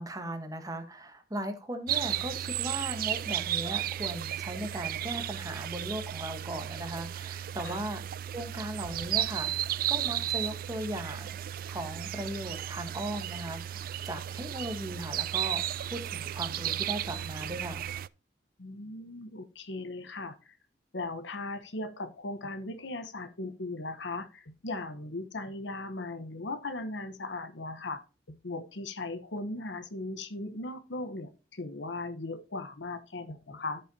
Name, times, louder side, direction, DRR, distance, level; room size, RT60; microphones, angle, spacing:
voice 1, 0.0-8.1 8.3-11.4 11.7-15.6 15.9-17.9, right 1 dB, 20° right, 1.2 m, -38 dB
Birds singing at stream, 1.9-18.1, right 12 dB, 50° right, 0.3 m, -34 dB
voice 2, 18.6-20.4 20.9-28.0 28.3-33.8, left 2 dB, 80° left, 1.0 m, -38 dB
13.0 x 5.4 x 2.7 m
head